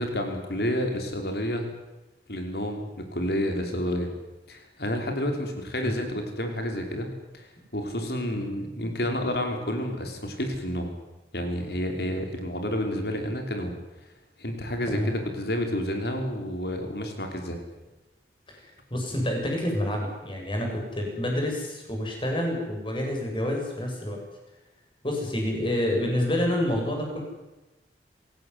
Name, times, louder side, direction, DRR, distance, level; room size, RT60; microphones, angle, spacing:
voice 1, 0.0-1.7 2.3-4.1 4.5-7.1 7.3-10.9 11.3-13.7 14.4-17.6, equal, 60° left, 4 dB, 5.6 m, -30 dB
voice 2, 18.9-24.2 25.0-27.2, left 1 dB, 30° left, 1 dB, 7.8 m, -28 dB
26.5 x 18.0 x 9.8 m, 1.1 s
head